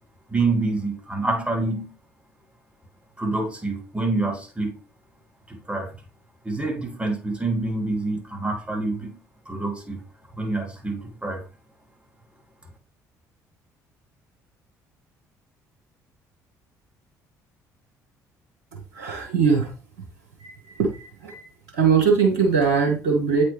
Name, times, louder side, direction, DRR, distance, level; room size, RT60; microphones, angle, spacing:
voice 1, 0.3-1.9 3.2-4.8 5.5-6.0 6.4-9.2 9.5-10.0 10.4-11.4, right 3 dB, 10° right, 2.2 m, -27 dB
voice 2, 18.9-19.7 20.4-21.4 21.7-23.4, right 5 dB, 85° right, 1.1 m, -21 dB
8.3 x 4.3 x 3.4 m
hypercardioid pair, 55°, 9 cm